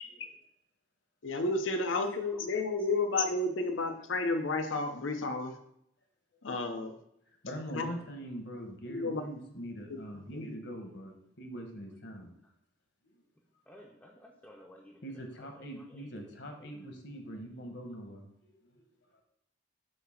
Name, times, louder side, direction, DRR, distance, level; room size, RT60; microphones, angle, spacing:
voice 1, 1.2-5.5 6.4-6.9 7.7-7.9 8.6-9.2 9.9-10.0 10.3-10.5, left 3 dB, 85° left, 7 dB, 0.8 m, -32 dB
voice 2, 7.4-12.3 15.0-18.5, equal, 60° left, 3 dB, 1.2 m, -43 dB
voice 3, 13.7-16.1, equal, 10° left, -2 dB, 0.6 m, -56 dB
7.7 x 2.9 x 5.8 m, 0.75 s
head